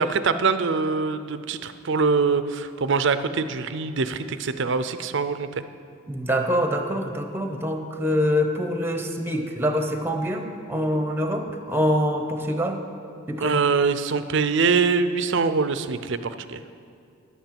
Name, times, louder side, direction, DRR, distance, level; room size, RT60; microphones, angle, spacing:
voice 1, 0.0-5.5 13.4-16.6, right 4 dB, 60° right, 11 dB, 0.6 m, -23 dB
voice 2, 6.1-12.8 13.3-13.6, equal, 10° right, 5 dB, 0.9 m, -25 dB
11.0 x 9.0 x 7.5 m, 2.5 s
head